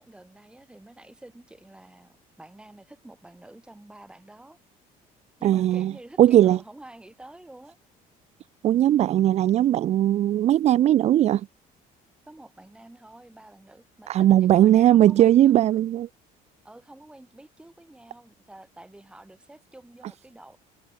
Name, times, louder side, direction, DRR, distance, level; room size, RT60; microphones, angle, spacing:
voice 1, 0.0-4.6 5.4-7.8 12.3-15.6 16.6-20.6, right 1 dB, 5° right, 3.9 m, -48 dB
voice 2, 5.4-5.9 6.2-6.6 8.6-11.4 14.1-16.1, right 12 dB, 45° right, 0.6 m, -18 dB
cardioid pair, 160°, 16 cm